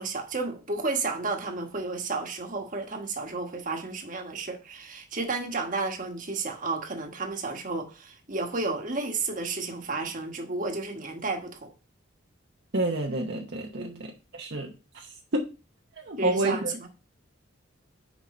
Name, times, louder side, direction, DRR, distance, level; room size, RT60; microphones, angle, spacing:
voice 1, 0.0-11.7 13.7-14.0 16.2-16.9, right 3 dB, 45° right, 1.3 m, -32 dB
voice 2, 12.7-14.7 14.9-15.5 16.0-16.7, right 2 dB, 60° right, 0.8 m, -29 dB
6.2 x 4.7 x 4.2 m
head